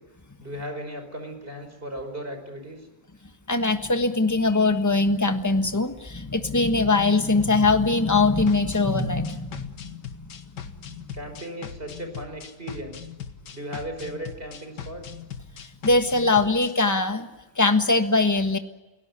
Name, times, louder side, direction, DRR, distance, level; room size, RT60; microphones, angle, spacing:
voice 1, 0.4-2.9 11.1-13.1 13.5-15.1, right 1 dB, 30° right, 6 dB, 5.3 m, -36 dB
voice 2, 3.5-9.7 10.1-10.3 15.8-17.3 17.6-18.6, left 3 dB, 10° left, 7 dB, 1.3 m, -21 dB
sound 1, 8.5-16.8, left 8 dB, 85° left, 2.0 m, -40 dB
28.5 x 17.5 x 9.9 m, 1.2 s
omnidirectional pair, 1.8 m